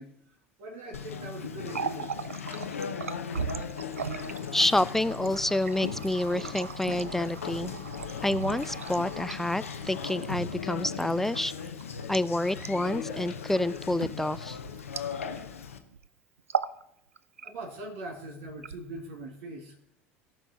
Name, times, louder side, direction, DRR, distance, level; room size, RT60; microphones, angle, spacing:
voice 1, 0.0-2.1 17.4-19.8, right 2 dB, 65° right, 2 dB, 2.0 m, -42 dB
Conversation, 0.9-15.8, left 6 dB, 85° left, 0.8 m, -38 dB
Water tap faucet, 1.5-15.6 15.8-16.1 16.4-16.8 17.2-17.8 18.5-19.2, right 6 dB, 90° right, 0.4 m, -38 dB
voice 2, 4.5-7.7 8.2-11.5 12.1-14.6, left 1 dB, 5° left, 17 dB, 0.4 m, -28 dB
17.5 x 6.0 x 4.0 m, 0.77 s
hypercardioid pair, 70°, 7 cm